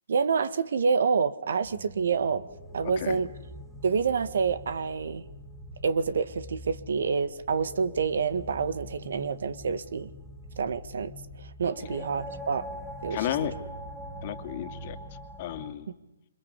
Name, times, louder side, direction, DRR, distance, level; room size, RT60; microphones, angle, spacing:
voice 1, 0.1-2.4 2.7-3.3 3.8-5.2 5.8-10.1 10.6-12.7 13.0-13.3, right 5 dB, 65° right, 14 dB, 1.7 m, -27 dB
sound 1, 1.6-15.7, equal, ahead, 2.7 m, -44 dB
voice 2, 13.1-13.5 14.2-15.0 15.4-15.9, left 12 dB, 40° left, 7 dB, 2.5 m, -33 dB
27.5 x 26.0 x 8.3 m, 0.94 s
hypercardioid pair, 145°, 0 cm